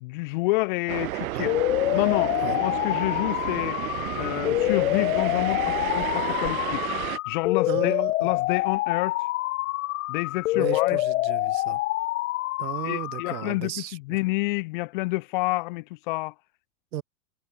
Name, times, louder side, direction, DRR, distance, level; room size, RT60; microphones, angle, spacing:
voice 1, 0.0-1.5 1.9-3.8 4.2-8.0 8.2-9.3 10.1-11.0 12.8-16.3, left 23 dB, 30° left, 0.8 m, -29 dB
sound 1, 0.9-7.2, right 17 dB, 55° right, 1.6 m, -32 dB
sound 2, 1.5-13.5, left 18 dB, 50° left, 2.2 m, -26 dB
voice 2, 7.7-8.3 10.5-11.8 12.6-14.2 16.9-17.0, right 13 dB, 85° right, 3.1 m, -35 dB
supercardioid pair, 170°, 49 cm